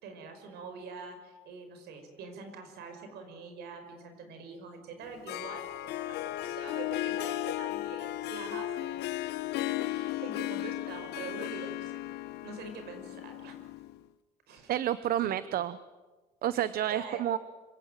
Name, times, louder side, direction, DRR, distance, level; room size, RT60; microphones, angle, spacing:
voice 1, 0.0-9.3 9.7-12.0 12.4-13.6 14.5-14.7 15.2-15.3 16.5-17.2, right 4 dB, 75° right, 7 dB, 5.5 m, -45 dB
Harp, 5.0-14.0, left 15 dB, 80° left, 1.0 m, -35 dB
voice 2, 14.7-15.8 16.4-17.4, right 11 dB, 60° right, 15 dB, 0.8 m, -29 dB
26.0 x 17.0 x 9.1 m, 1.3 s
cardioid pair, 110°, 17 cm